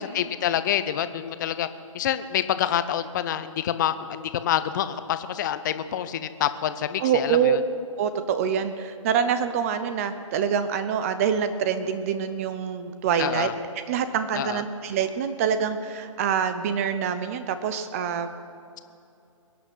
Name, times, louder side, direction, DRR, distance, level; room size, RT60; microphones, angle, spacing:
voice 1, 0.0-1.7 1.9-7.6 13.2-13.5 14.3-14.6, left 10 dB, 35° left, 12 dB, 0.7 m, -27 dB
voice 2, 7.0-7.6 8.0-13.5 13.9-18.3, right 7 dB, 25° right, 10 dB, 0.7 m, -25 dB
22.5 x 9.0 x 6.3 m, 2.6 s
hypercardioid pair, 145°, 17 cm